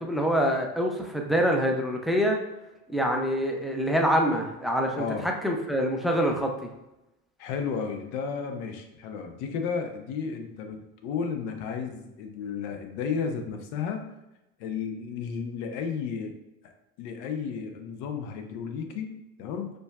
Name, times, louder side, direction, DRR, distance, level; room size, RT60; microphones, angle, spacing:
voice 1, 0.0-2.4 2.9-6.7, equal, ahead, 2 dB, 0.4 m, -25 dB
voice 2, 4.9-5.3 7.4-14.1 14.6-16.4 16.6-16.7 17.0-19.7, left 6 dB, 60° left, 5 dB, 0.7 m, -33 dB
5.1 x 2.3 x 2.3 m, 0.94 s
hypercardioid pair, 85°, 41 cm